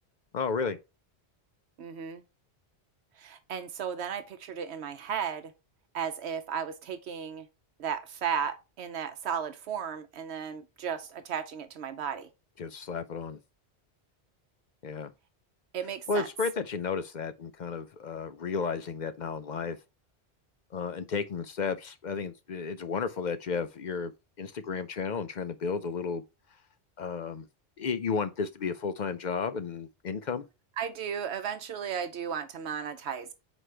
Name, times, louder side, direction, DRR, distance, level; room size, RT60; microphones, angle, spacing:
voice 1, 0.3-0.8 12.6-13.4 14.8-15.1 16.1-19.8 20.7-24.1 24.4-26.2 27.0-27.5 27.8-30.4, left 5 dB, 55° left, 0.6 m, -33 dB
voice 2, 1.8-2.2 3.2-5.5 5.9-7.5 7.8-12.3 15.7-16.3 30.8-33.3, right 7 dB, 80° right, 0.9 m, -35 dB
6.2 x 5.0 x 3.2 m
omnidirectional pair, 1.1 m